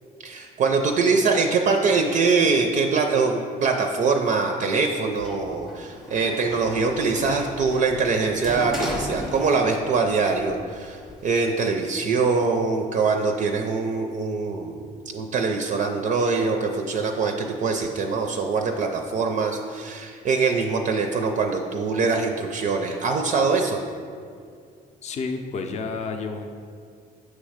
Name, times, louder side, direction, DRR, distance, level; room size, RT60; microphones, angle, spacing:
voice 1, 0.2-23.8, right 4 dB, 45° right, 4 dB, 0.4 m, -23 dB
Sliding door, 5.2-10.0 10.3-11.3, equal, ahead, 0.6 m, -36 dB
voice 2, 25.0-26.5, left 4 dB, 40° left, 5 dB, 0.5 m, -30 dB
6.4 x 3.1 x 4.9 m, 2.2 s
cardioid pair, 110°, 17 cm